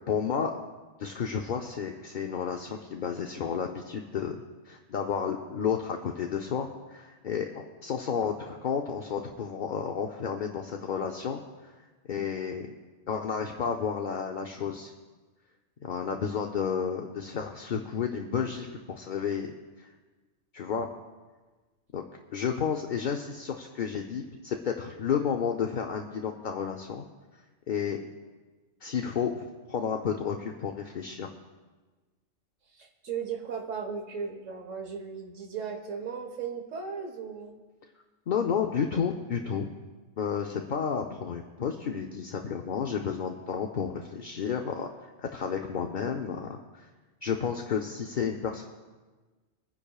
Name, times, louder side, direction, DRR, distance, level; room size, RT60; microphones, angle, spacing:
voice 1, 0.1-0.6 1.0-4.4 4.7-7.5 7.8-11.7 12.1-12.7 13.1-14.9 15.8-19.9 20.5-20.9 21.9-22.0 22.3-27.0 27.7-28.0 28.8-31.3 38.3-39.7 40.2-44.9 45.2-46.9 47.2-48.6, left 7 dB, 50° left, 2 dB, 0.6 m, -31 dB
voice 2, 32.8-37.6, right 6 dB, 70° right, 4 dB, 1.6 m, -36 dB
26.0 x 10.0 x 2.4 m, 1.3 s
omnidirectional pair, 1.3 m